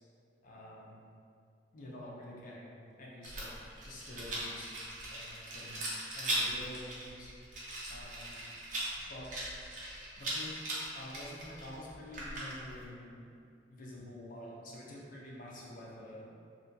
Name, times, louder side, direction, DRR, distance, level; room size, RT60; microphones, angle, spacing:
voice 1, 0.4-1.0 1.7-5.9 6.1-7.3 7.9-8.4 9.1-9.5 10.2-10.7 10.9-13.3 13.7-16.3, left 1 dB, 50° left, -4 dB, 0.4 m, -48 dB
Rattle, 3.2-12.8, right 1 dB, 45° right, 0.5 m, -39 dB
2.5 x 2.2 x 2.5 m, 2.4 s
head